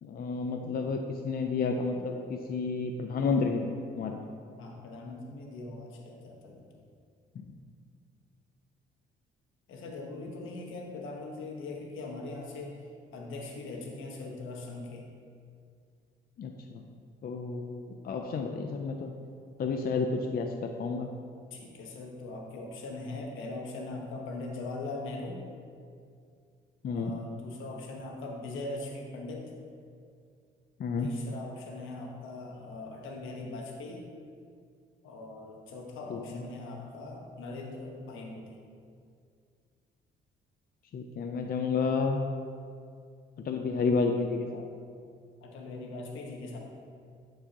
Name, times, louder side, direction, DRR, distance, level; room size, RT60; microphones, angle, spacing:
voice 1, 0.0-4.2 7.4-7.5 16.4-16.8 17.2-19.1 19.6-20.5 20.8-21.1 26.8-27.1 30.8-31.1 36.1-36.4 40.9-42.2 43.4-44.6, left 4 dB, 50° left, 3 dB, 0.5 m, -31 dB
voice 2, 4.6-6.7 9.7-12.9 13.1-15.0 21.5-25.4 26.9-29.5 31.0-34.0 35.0-38.5 45.4-46.6, left 2 dB, 80° left, 0 dB, 1.2 m, -41 dB
11.0 x 4.7 x 2.9 m, 2.3 s
cardioid pair, 90°, 20 cm